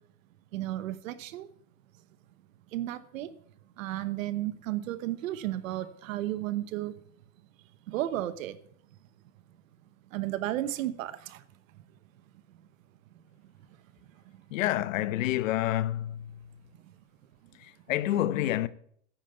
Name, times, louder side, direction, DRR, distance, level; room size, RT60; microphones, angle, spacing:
voice 1, 0.5-1.5 2.7-3.3 3.8-6.9 7.9-8.6 10.1-11.4, right 14 dB, 90° right, 1.1 m, -33 dB
voice 2, 14.5-16.5 17.6-18.7, left 14 dB, 85° left, 1.0 m, -28 dB
10.0 x 9.1 x 8.0 m
supercardioid pair, 150°, 38 cm